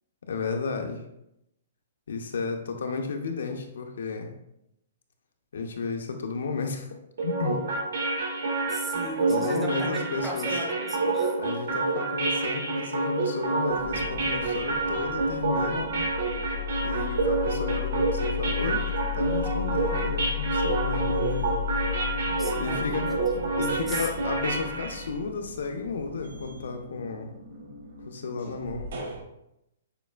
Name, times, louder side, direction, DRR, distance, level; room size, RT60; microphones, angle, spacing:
voice 1, 0.3-1.0 2.1-4.3 5.5-7.0 7.2-7.6 9.3-10.6 11.4-15.9 16.8-18.8 19.1-21.6 22.6-23.1 23.6-27.4 28.1-29.0, left 4 dB, 75° left, 5 dB, 0.6 m, -33 dB
sound 1, 7.2-25.0, right 3 dB, 90° right, 1.3 m, -28 dB
voice 2, 8.7-11.4 22.3-24.1, right 1 dB, 5° right, 0 dB, 0.4 m, -37 dB
sound 2, 12.9-13.0 13.3-29.2, left 10 dB, 50° right, 0.8 m, -35 dB
6.5 x 2.5 x 2.4 m, 0.83 s
hypercardioid pair, 180°, 0 cm